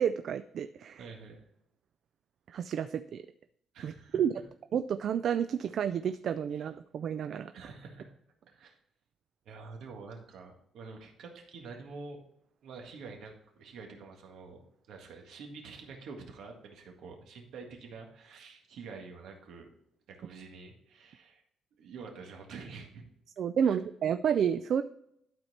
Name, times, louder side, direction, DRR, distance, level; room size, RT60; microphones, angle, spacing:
voice 1, 0.0-1.0 2.5-3.2 3.8-4.3 4.7-7.5 23.4-24.8, right 8 dB, 50° right, 11 dB, 0.3 m, -30 dB
voice 2, 1.0-1.4 3.7-4.2 6.5-6.6 7.5-8.1 8.5-8.8 9.5-12.2 12.6-14.6 14.9-19.7 20.1-21.4 21.8-23.0 23.6-23.8, right 4 dB, 65° right, 2 dB, 1.8 m, -47 dB
12.0 x 4.4 x 4.2 m, 0.76 s
cardioid pair, 155°, 0 cm